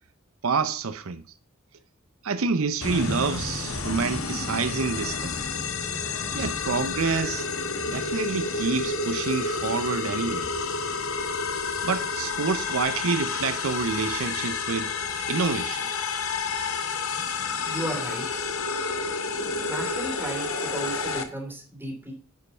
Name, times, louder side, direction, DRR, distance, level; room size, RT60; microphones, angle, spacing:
voice 1, 0.4-1.2 2.2-5.4 6.3-7.5 7.9-10.5 11.8-14.9 15.3-15.9, right 4 dB, 75° right, 0.7 m, -28 dB
sound 1, 2.8-21.2, left 4 dB, 80° left, 1.4 m, -30 dB
voice 2, 17.1-18.2 19.6-22.1, right 1 dB, 10° right, 3.0 m, -35 dB
10.5 x 5.4 x 5.4 m
head